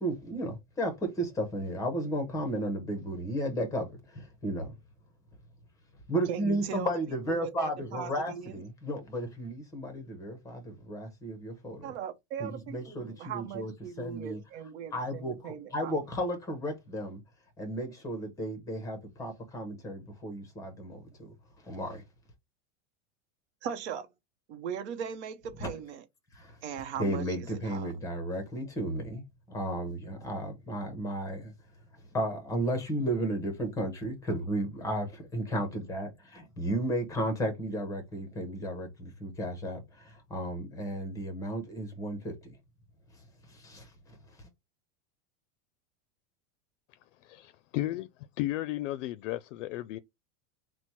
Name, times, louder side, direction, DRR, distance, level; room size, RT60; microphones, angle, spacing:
voice 1, 0.0-4.7 6.1-11.9 12.4-13.7 14.0-14.4 14.9-17.2 17.6-21.3 21.6-22.0 25.6-25.7 26.3-26.6 27.0-29.2 29.5-31.5 32.1-42.5 43.5-44.2, right 1 dB, 10° left, 0.7 m, -34 dB
voice 2, 6.3-6.9 7.3-8.6 11.8-16.0 23.6-24.1 24.5-26.0 26.6-27.9, right 8 dB, 60° right, 0.8 m, -39 dB
voice 3, 47.2-48.1 48.4-50.0, left 15 dB, 75° left, 0.5 m, -34 dB
4.2 x 2.1 x 4.5 m
supercardioid pair, 170°, 37 cm